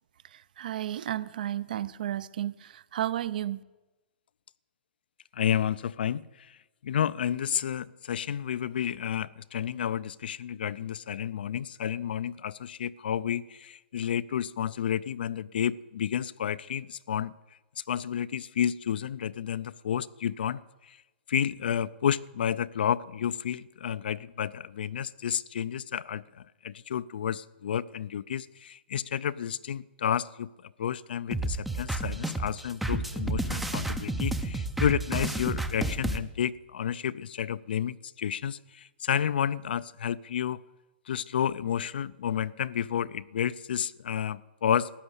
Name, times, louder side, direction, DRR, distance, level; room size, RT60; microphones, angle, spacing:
voice 1, 0.6-3.6, right 12 dB, 50° right, 0.5 m, -32 dB
voice 2, 5.3-6.6 6.8-17.3 17.9-21.0 21.3-40.6 41.1-44.9, left 9 dB, 60° left, 0.4 m, -31 dB
sound 1, 31.3-36.2, right 2 dB, ahead, 0.5 m, -31 dB
14.0 x 9.9 x 8.0 m
hypercardioid pair, 170°, 6 cm